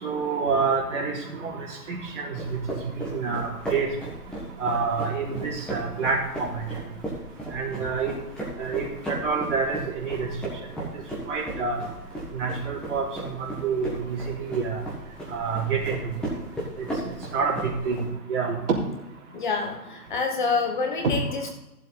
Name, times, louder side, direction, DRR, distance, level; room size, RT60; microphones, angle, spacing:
voice 1, 0.0-1.5 1.9-2.6 3.0-3.9 4.6-6.6 7.5-8.1 8.6-10.3 11.3-11.8 12.3-14.8 15.3-16.0 16.8-16.9 17.3-18.0 18.3-18.5 21.0-21.1, right 5 dB, 50° right, -3 dB, 3.6 m, -27 dB
sound 1, 2.4-18.0, right 1 dB, ahead, 1.4 m, -36 dB
voice 2, 19.3-21.5, left 4 dB, 30° left, 4 dB, 1.0 m, -27 dB
14.0 x 7.5 x 4.0 m, 0.93 s
hypercardioid pair, 155°, 47 cm